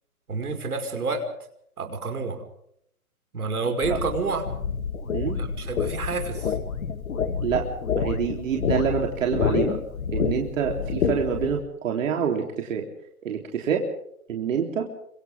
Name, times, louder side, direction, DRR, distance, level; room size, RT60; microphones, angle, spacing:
voice 1, 0.3-1.3 1.8-2.4 3.3-4.5 5.4-6.6, right 4 dB, 80° right, 5 dB, 5.5 m, -29 dB
sound 1, 3.8-11.5, left 6 dB, 65° left, 2.7 m, -28 dB
voice 2, 7.9-9.8 10.1-12.9 13.2-13.9 14.3-14.8, right 7 dB, 60° right, 2 dB, 3.8 m, -26 dB
29.0 x 25.5 x 3.7 m, 0.70 s
hypercardioid pair, 135°, 44 cm